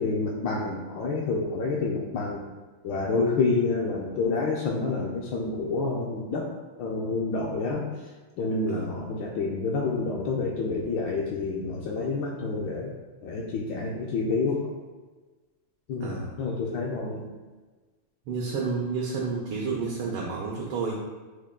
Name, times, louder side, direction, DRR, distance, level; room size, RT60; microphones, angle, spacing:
voice 1, 0.0-2.4 2.8-6.5 6.8-12.9 13.2-14.6 15.9-17.3, left 3 dB, 75° left, -2 dB, 1.2 m, -28 dB
voice 2, 18.3-20.9, right 4 dB, 90° right, -3 dB, 1.6 m, -30 dB
6.3 x 2.2 x 3.6 m, 1.3 s
omnidirectional pair, 2.3 m